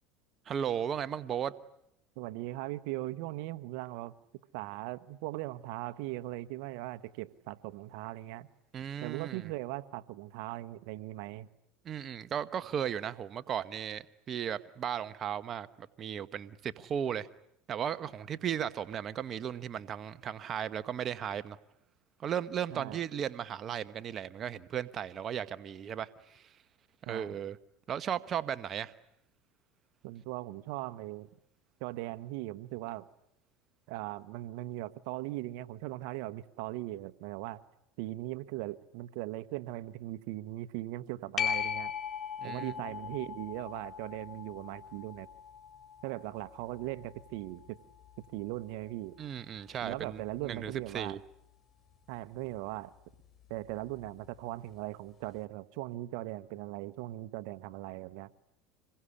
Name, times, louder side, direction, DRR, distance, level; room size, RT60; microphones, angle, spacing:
voice 1, 0.5-1.5 8.7-9.5 11.8-17.3 17.7-21.6 22.2-26.5 27.0-27.6 27.9-28.9 42.4-42.7 49.2-50.2 50.5-51.2, right 9 dB, 40° right, 1.1 m, -36 dB
voice 2, 2.2-4.1 4.5-8.5 9.0-11.5 22.7-23.0 27.1-27.4 30.0-31.3 31.8-33.0 33.9-37.6 38.0-41.9 42.4-45.3 46.0-47.8 48.3-49.2 49.8-51.2 52.1-52.9 53.5-58.3, right 17 dB, 70° right, 1.2 m, -39 dB
sound 1, 41.4-48.5 54.1-54.2, left 8 dB, 35° left, 4.3 m, -39 dB
26.5 x 22.0 x 10.0 m
supercardioid pair, 105°, 0 cm